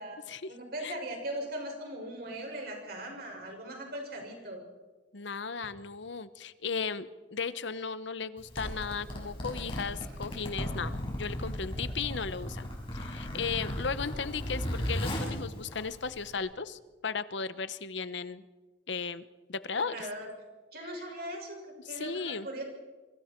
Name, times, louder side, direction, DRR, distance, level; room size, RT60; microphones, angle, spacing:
voice 1, 0.5-4.6 19.9-20.3 20.7-22.6, right 1 dB, 55° right, 1 dB, 6.2 m, -39 dB
voice 2, 5.1-12.6 12.9-18.4 18.9-19.2 19.5-20.1 21.8-22.5, left 5 dB, 70° left, 14 dB, 0.9 m, -36 dB
Zipper (clothing), 8.4-16.4, equal, 30° left, 5.7 m, -36 dB
26.5 x 24.5 x 4.5 m, 1.3 s
head